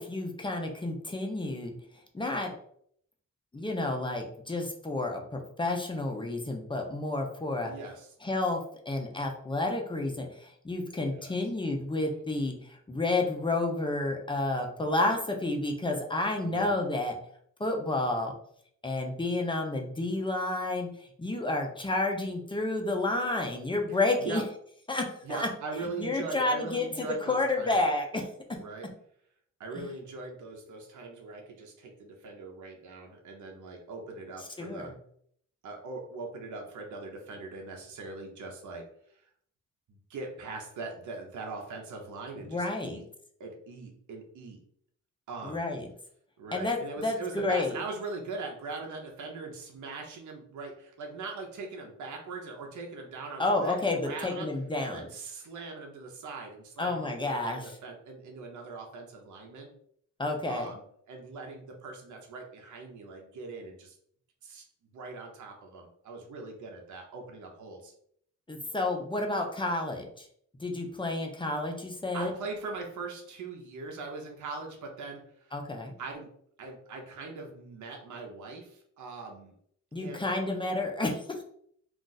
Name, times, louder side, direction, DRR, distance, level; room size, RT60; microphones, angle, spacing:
voice 1, 0.0-1.8 2.1-2.5 3.5-7.7 8.2-17.2 17.6-18.3 18.8-20.9 21.2-24.4 24.9-25.5 26.0-28.3 29.8-29.9 34.6-34.9 42.5-43.0 45.4-45.9 46.5-47.8 53.4-55.0 56.8-57.8 60.2-60.7 68.5-70.3 70.6-72.3 75.5-75.9 79.9-81.4, left 2 dB, 15° left, 2 dB, 0.6 m, -30 dB
voice 2, 7.5-8.1 11.1-11.3 16.4-16.7 23.9-24.4 25.2-27.7 28.6-28.9 29.6-34.9 35.6-38.8 39.1-39.3 39.9-43.0 43.4-44.6 45.3-45.6 46.4-54.5 54.8-59.7 60.5-60.8 61.1-64.0 64.4-64.6 64.9-67.9 72.1-75.6 76.0-76.3 76.6-79.5 80.0-80.6, right 3 dB, 70° right, 1 dB, 0.8 m, -41 dB
2.5 x 2.5 x 3.8 m, 0.65 s
cardioid pair, 90°, 31 cm